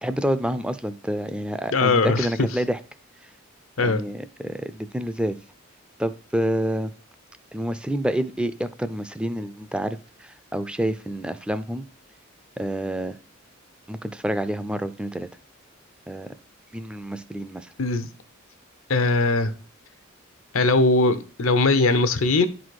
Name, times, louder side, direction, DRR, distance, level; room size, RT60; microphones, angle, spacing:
voice 1, 0.0-2.8 3.8-5.4 6.0-6.9 7.5-11.8 12.6-13.2 13.9-15.3 16.1-16.3 16.7-17.7, right 1 dB, 5° right, 0.4 m, -28 dB
voice 2, 1.7-2.3 3.8-4.0 17.8-18.1 18.9-19.5 20.5-22.5, left 3 dB, 85° left, 0.8 m, -20 dB
10.5 x 4.1 x 4.7 m
head